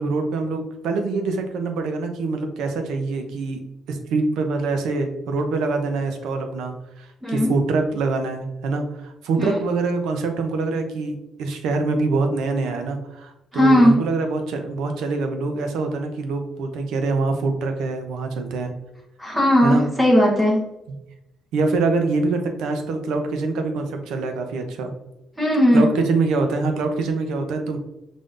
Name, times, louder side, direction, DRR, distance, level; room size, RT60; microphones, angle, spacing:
voice 1, 0.0-3.6 3.9-18.7 19.6-19.8 21.5-24.9 25.7-27.8, right 3 dB, 90° right, 6 dB, 0.7 m, -24 dB
voice 2, 13.5-14.0 19.2-20.6 25.4-25.8, equal, 10° right, -4 dB, 1.0 m, -17 dB
5.2 x 3.7 x 2.6 m, 0.90 s
cardioid pair, 90°, 0 cm